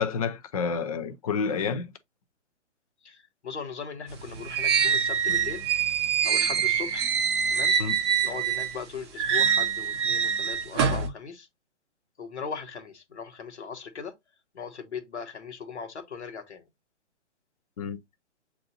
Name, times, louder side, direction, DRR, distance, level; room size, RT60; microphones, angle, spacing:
voice 1, 0.0-1.9 7.8-8.0 17.8-18.0, left 6 dB, 30° left, 0.5 m, -29 dB
voice 2, 3.0-5.7 6.2-7.1 7.5-7.7 8.2-11.5 12.2-14.1 14.5-16.7, left 6 dB, 65° left, 1.2 m, -39 dB
sound 1, 4.1-8.8 9.2-11.1, right 7 dB, 25° right, 0.6 m, -25 dB
7.4 x 2.7 x 2.6 m
figure-of-eight pair, 130°, 36 cm